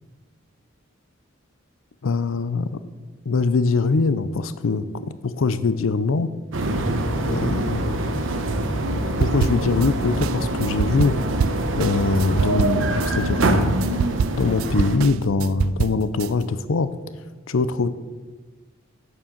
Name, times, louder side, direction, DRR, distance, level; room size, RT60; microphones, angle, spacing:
voice 1, 2.0-2.8 3.3-6.3 7.3-8.4 8.9-11.1 11.8-13.8 14.4-16.9 17.5-17.9, left 4 dB, 80° left, 14 dB, 0.5 m, -23 dB
sound 1, 6.5-15.0, right 1 dB, 70° right, 1.0 m, -24 dB
sound 2, 9.2-9.9 10.2-13.1 13.4-16.3, right 7 dB, 85° right, 0.3 m, -26 dB
8.3 x 7.1 x 7.2 m, 1.3 s
head